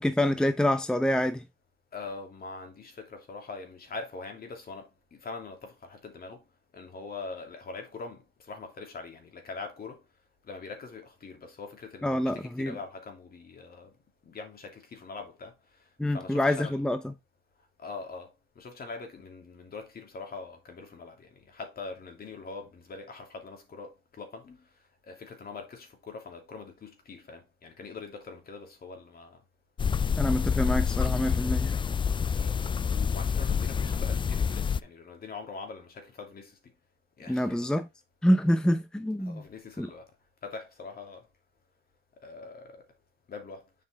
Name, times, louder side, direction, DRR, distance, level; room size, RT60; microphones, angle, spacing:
voice 1, 0.0-1.4 12.0-12.8 16.0-17.1 30.2-31.7 37.3-37.9 38.2-39.4 39.8-39.9, left 1 dB, 5° left, 0.7 m, -26 dB
voice 2, 1.9-6.4 6.7-10.0 10.4-13.9 14.2-15.5 16.1-16.8 17.8-24.6 25.1-29.4 32.4-36.7 37.2-37.7 39.2-40.1 40.4-41.3 42.2-42.9 43.3-43.6, left 4 dB, 50° left, 2.8 m, -43 dB
sound 1, 29.8-34.8, left 6 dB, 25° left, 0.3 m, -27 dB
7.5 x 5.4 x 3.6 m
cardioid pair, 90°, 20 cm